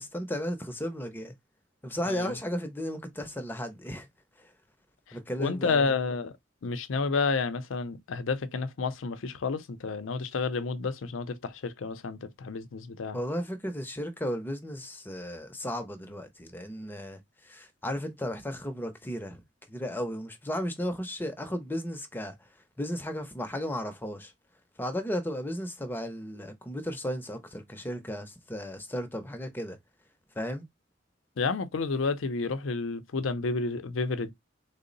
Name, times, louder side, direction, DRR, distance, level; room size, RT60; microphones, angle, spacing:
voice 1, 0.0-1.3 1.8-4.1 5.1-5.9 13.1-19.4 19.7-22.4 22.8-24.3 24.8-29.8 30.4-30.6, equal, 10° left, 0.6 m, -34 dB
voice 2, 5.4-6.3 6.6-13.2 31.4-34.3, left 4 dB, 85° left, 0.5 m, -30 dB
3.7 x 2.0 x 3.8 m
head